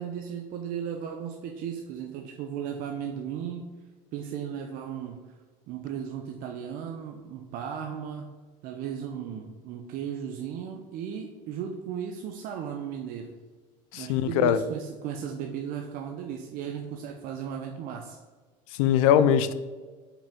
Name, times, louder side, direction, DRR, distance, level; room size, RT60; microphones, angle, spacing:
voice 1, 0.0-3.7 4.1-5.2 5.7-8.3 8.6-13.3 13.9-18.2, right 8 dB, 55° right, 0.6 m, -36 dB
voice 2, 13.9-14.6 18.8-19.5, left 9 dB, 80° left, 0.4 m, -21 dB
5.4 x 4.8 x 3.6 m
supercardioid pair, 95°, 17 cm